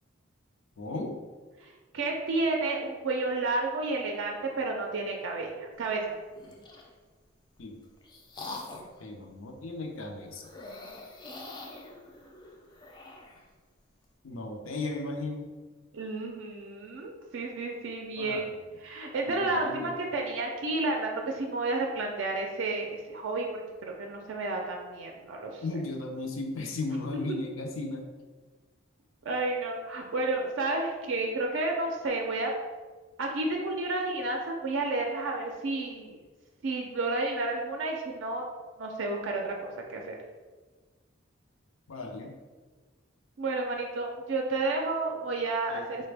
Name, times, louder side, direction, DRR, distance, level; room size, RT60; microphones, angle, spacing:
voice 1, 0.8-1.2 7.6-7.8 9.0-10.5 14.2-15.5 18.2-18.5 19.2-19.9 25.6-28.1 41.9-42.3 45.7-45.8, left 2 dB, 85° left, 2 dB, 0.5 m, -36 dB
voice 2, 1.6-6.2 15.9-25.6 29.2-32.5 33.2-36.2 36.6-38.5 38.8-40.1 43.4-46.1, right 2 dB, 65° right, 1 dB, 0.4 m, -31 dB
sound 1, 6.3-6.9 7.6-9.0 10.4-13.4, left 2 dB, 20° left, 0.3 m, -44 dB
4.1 x 2.1 x 3.3 m, 1.4 s
head